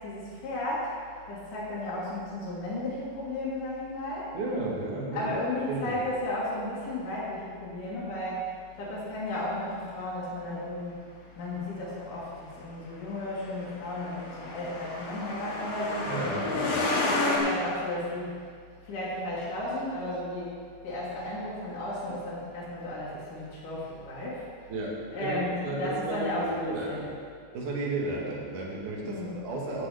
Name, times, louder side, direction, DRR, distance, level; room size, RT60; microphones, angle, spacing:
voice 1, 0.0-0.9 1.3-4.3 5.1-8.5 8.8-11.0 11.4-16.2 17.0-18.3 18.8-20.5 20.8-24.5 25.1-27.0 29.0-29.3, left 1 dB, 65° left, -9 dB, 3.3 m, -34 dB
voice 2, 4.3-5.4 5.7-5.9 16.1-16.8 24.7-27.1 27.5-29.9, right 2 dB, 65° right, -4 dB, 3.1 m, -33 dB
Truck, 13.3-17.4, left 2 dB, 80° left, 3.4 m, -31 dB
15.0 x 8.1 x 3.4 m, 2.1 s
omnidirectional pair, 4.2 m